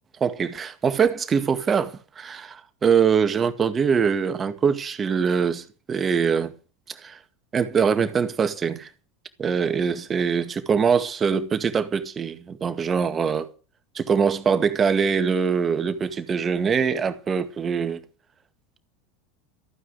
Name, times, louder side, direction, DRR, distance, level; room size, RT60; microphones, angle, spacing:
voice 1, 0.2-6.5 6.9-7.2 7.5-8.9 9.4-13.5 14.0-18.0, right 6 dB, 25° right, 2.0 m, -23 dB
14.5 x 9.5 x 7.9 m
figure-of-eight pair, 80°, 0 cm